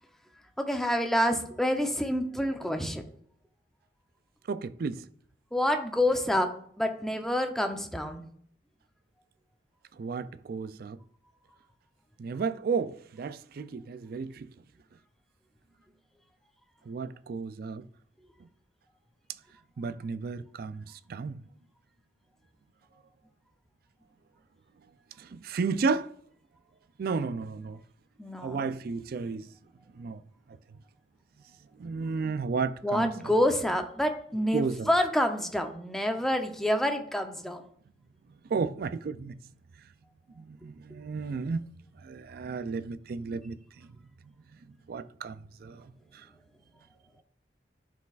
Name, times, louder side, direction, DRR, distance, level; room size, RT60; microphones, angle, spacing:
voice 1, 0.6-3.0 5.5-8.2 28.2-28.8 32.8-37.7, left 1 dB, ahead, 0.6 m, -28 dB
voice 2, 4.5-5.0 10.0-11.0 12.2-14.3 16.9-17.8 19.8-20.8 21.1-21.3 25.3-26.1 27.0-27.8 28.4-29.4 30.0-30.2 31.8-33.1 34.5-34.9 38.5-39.3 40.6-41.6 42.1-43.5 44.9-45.4 45.6-45.8, right 4 dB, 55° right, 0.4 m, -32 dB
11.5 x 4.6 x 2.4 m
head